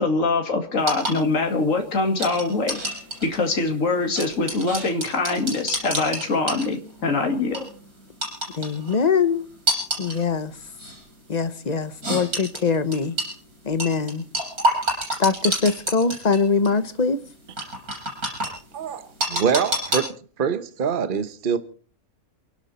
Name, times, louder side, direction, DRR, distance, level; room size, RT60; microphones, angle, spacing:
voice 1, 0.0-2.8 3.2-7.6, left 3 dB, 60° left, 2.7 m, -23 dB
sound 1, 0.8-7.0 7.4-7.7 8.2-8.9 9.7-10.2 10.8-11.0 12.0-13.3 13.8-16.4 16.7-16.8 17.6-18.5 19.2-20.0, right 1 dB, 80° right, 7.3 m, -27 dB
voice 2, 8.6-9.5 10.0-10.5 11.3-13.2 13.7-14.2 15.2-17.2, left 5 dB, 35° left, 0.9 m, -22 dB
voice 3, 18.7-20.1 20.4-21.6, right 7 dB, 40° right, 1.1 m, -24 dB
28.5 x 11.5 x 4.3 m
omnidirectional pair, 1.5 m